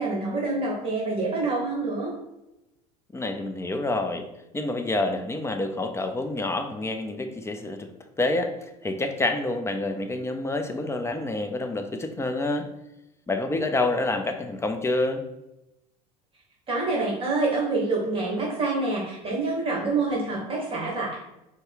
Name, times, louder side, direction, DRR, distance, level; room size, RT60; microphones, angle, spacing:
voice 1, 0.0-2.1 16.7-21.2, right 3 dB, 30° right, -3 dB, 1.3 m, -26 dB
voice 2, 3.1-4.2 4.5-12.7 13.3-15.2, left 2 dB, 15° left, 7 dB, 0.6 m, -28 dB
4.6 x 2.2 x 4.7 m, 0.91 s
hypercardioid pair, 80°, 19 cm